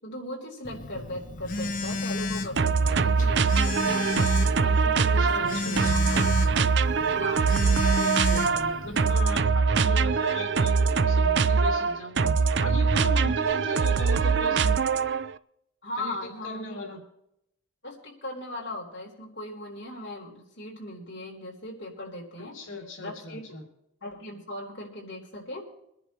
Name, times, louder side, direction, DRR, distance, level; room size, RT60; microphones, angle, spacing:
voice 1, 0.0-4.3 4.6-6.1 7.1-7.5 15.8-16.8 17.8-22.6 23.0-23.5 24.0-25.6, left 1 dB, 60° left, -2 dB, 4.0 m, -38 dB
Telephone, 0.6-9.2, left 3 dB, 40° left, 1.0 m, -32 dB
sound 1, 2.6-15.3, right 5 dB, 55° right, 0.5 m, -23 dB
voice 2, 5.2-6.1 7.8-14.8 16.0-17.0 22.5-23.6, left 2 dB, 75° left, 0 dB, 2.8 m, -38 dB
24.0 x 10.5 x 3.2 m, 0.78 s
head